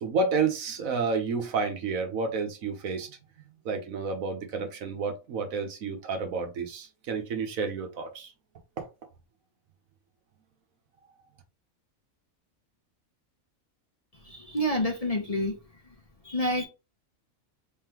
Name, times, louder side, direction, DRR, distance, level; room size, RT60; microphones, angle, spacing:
voice 1, 0.0-3.1 3.6-8.3 8.8-8.9, right 4 dB, 75° right, 1.4 m, -30 dB
voice 2, 14.2-15.6 16.2-16.6, equal, 30° left, 0.9 m, -28 dB
4.1 x 3.8 x 3.0 m
omnidirectional pair, 1.4 m